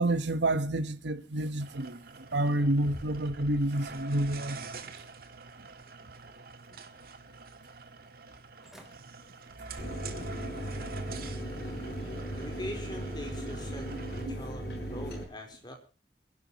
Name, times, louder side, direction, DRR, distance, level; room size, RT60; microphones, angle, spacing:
voice 1, 0.0-2.0 2.3-4.6 14.3-14.4, right 1 dB, 80° right, 1.3 m, -29 dB
sound 1, 1.6-14.3, right 4 dB, 55° right, 1.7 m, -46 dB
sound 2, 2.6-4.5 5.0-5.8 6.2-7.1 7.5-7.6 8.3-8.4 8.6-9.0 9.4-9.7 10.2-10.3, equal, ahead, 3.5 m, -51 dB
Mechanisms, 9.8-15.2, right 1 dB, 60° left, 6.4 m, -37 dB
voice 2, 12.3-13.9 14.3-15.7, left 1 dB, 25° left, 4.1 m, -42 dB
27.5 x 11.5 x 3.0 m
head